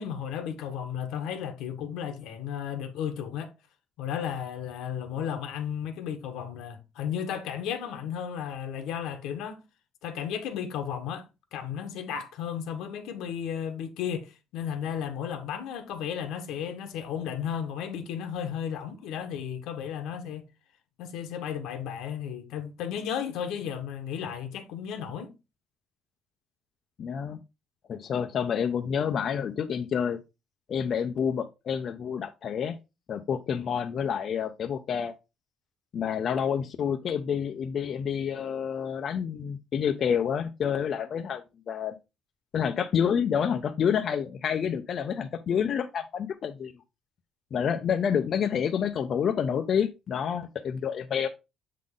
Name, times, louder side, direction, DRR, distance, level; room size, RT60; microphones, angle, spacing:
voice 1, 0.0-3.5 4.0-9.6 10.0-20.5 21.0-25.3, left 8 dB, 90° left, 1.2 m, -34 dB
voice 2, 27.0-27.4 27.9-30.2 30.7-32.8 33.1-35.1 35.9-42.0 42.5-46.7 47.5-51.3, left 7 dB, 45° left, 0.6 m, -28 dB
7.4 x 3.9 x 3.7 m
cardioid pair, 145°, 0 cm